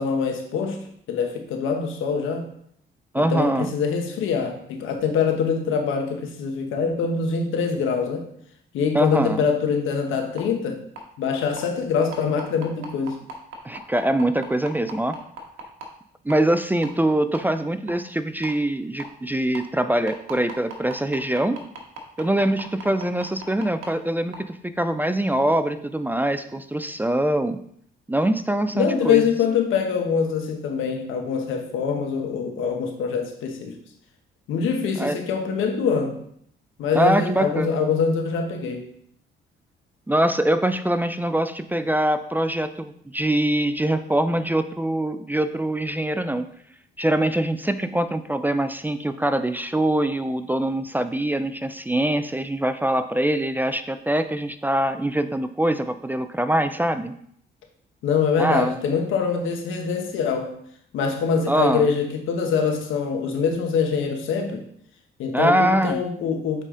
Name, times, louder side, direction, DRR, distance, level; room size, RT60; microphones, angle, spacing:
voice 1, 0.0-2.5 3.2-8.3 8.7-10.8 11.2-13.2 28.7-33.8 34.5-36.2 36.8-38.8 58.0-60.5 60.9-64.6 65.2-66.6, left 6 dB, 85° left, 4 dB, 1.2 m, -24 dB
voice 2, 3.1-3.7 8.9-9.4 13.6-15.2 16.3-21.6 22.2-27.6 28.1-29.2 35.0-35.2 36.9-37.8 40.1-46.5 47.0-57.1 58.4-58.8 61.5-61.9 65.3-66.0, right 1 dB, 10° right, 11 dB, 0.4 m, -23 dB
sound 1, 10.4-10.5 11.0-11.1 11.6-11.7 12.1-15.9 16.3-16.4 16.8-16.9 17.3-17.4 17.9-18.0 18.4-18.5 19.0-19.1 19.5-19.6 20.1-23.9 24.3-24.4, right 4 dB, 85° right, 1.4 m, -36 dB
6.5 x 4.9 x 3.8 m, 0.67 s
cardioid pair, 90°, 20 cm